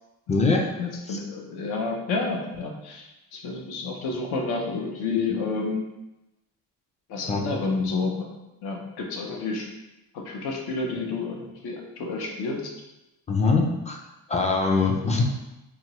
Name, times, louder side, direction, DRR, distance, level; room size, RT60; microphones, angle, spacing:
voice 1, 0.3-0.7 1.1-1.2 7.3-7.5 13.3-14.0 14.3-15.4, left 3 dB, 20° left, 1 dB, 0.4 m, -23 dB
voice 2, 0.8-5.8 7.1-8.3 8.6-9.7 10.1-12.7, left 3 dB, 70° left, 0 dB, 0.7 m, -30 dB
2.8 x 2.4 x 3.0 m, 0.97 s
supercardioid pair, 75°, 39 cm